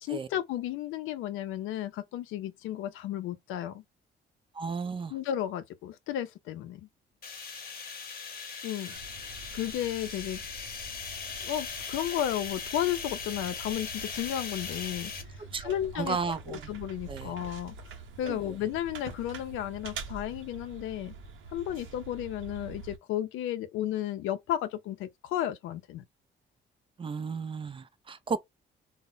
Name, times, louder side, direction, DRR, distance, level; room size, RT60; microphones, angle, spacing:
voice 1, 0.0-3.8 5.1-6.9 8.6-9.0 9.5-10.4 11.4-15.1 15.6-16.2 16.5-17.8 18.2-21.1 21.5-26.0, left 11 dB, 90° left, 0.4 m, -33 dB
voice 2, 4.5-5.1 8.9-9.0 15.5-16.6 17.1-17.3 18.2-18.4 27.0-28.4, right 5 dB, 25° right, 0.3 m, -34 dB
sound 1, 7.2-15.2, left 5 dB, 50° left, 0.9 m, -39 dB
sound 2, 9.0-23.0, right 4 dB, 85° right, 0.7 m, -46 dB
2.0 x 2.0 x 3.7 m
cardioid pair, 90°, 20 cm